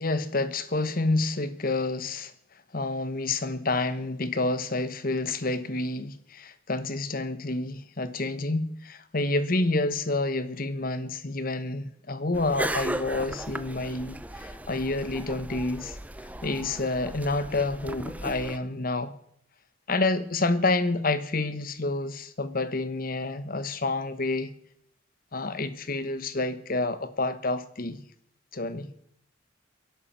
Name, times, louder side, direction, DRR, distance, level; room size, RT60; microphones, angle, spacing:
voice 1, 0.0-2.3 2.7-16.0 16.4-19.1 19.9-24.5 25.3-28.0 28.5-28.9, left 2 dB, 45° left, 1.2 m, -28 dB
sound 1, 12.3-18.6, right 1 dB, 10° right, 0.7 m, -36 dB
17.0 x 11.5 x 7.4 m
head